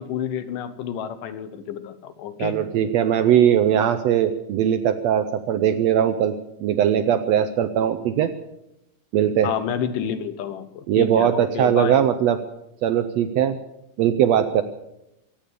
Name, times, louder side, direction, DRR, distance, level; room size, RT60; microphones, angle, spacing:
voice 1, 0.0-2.6 9.4-12.0, left 8 dB, 80° left, 11 dB, 2.7 m, -29 dB
voice 2, 2.4-6.3 6.6-8.3 9.1-9.5 10.9-12.4 12.8-13.6 14.0-14.6, right 10 dB, 80° right, 10 dB, 1.5 m, -20 dB
23.5 x 8.8 x 6.7 m, 0.86 s
omnidirectional pair, 3.8 m